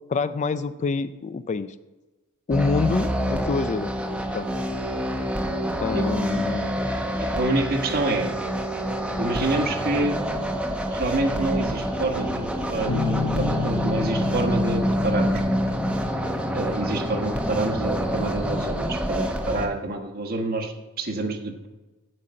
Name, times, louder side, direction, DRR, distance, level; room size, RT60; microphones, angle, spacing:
voice 1, 0.1-1.7 2.5-3.9 4.3-4.5 5.8-6.8, left 4 dB, 35° left, 13 dB, 0.3 m, -26 dB
sound 1, 2.5-19.7, equal, 5° right, 0.9 m, -27 dB
voice 2, 7.2-8.3 9.2-10.2 10.9-15.4 16.5-21.7, right 2 dB, 45° right, 3 dB, 1.3 m, -27 dB
Guitar, 12.9-18.1, left 3 dB, 85° left, 0.9 m, -31 dB
7.7 x 7.4 x 7.6 m, 1.2 s
head